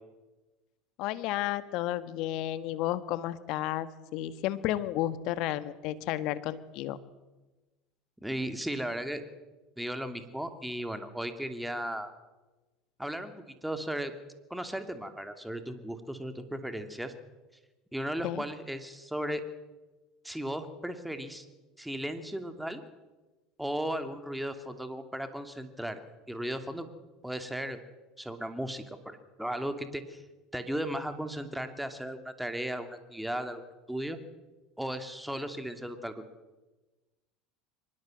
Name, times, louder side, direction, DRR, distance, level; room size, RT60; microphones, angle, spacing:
voice 1, 1.0-7.0 18.2-18.4, left 14 dB, 60° left, 14 dB, 1.5 m, -32 dB
voice 2, 8.2-9.2 9.8-12.1 13.0-13.3 13.6-14.1 14.5-17.1 17.9-19.4 20.2-21.5 21.8-22.8 23.6-26.0 26.3-26.9 27.2-27.8 28.2-30.2 30.5-34.2 34.8-36.2, right 1 dB, 5° right, 8 dB, 2.6 m, -36 dB
23.5 x 20.0 x 7.8 m, 1.2 s
hypercardioid pair, 75°, 0 cm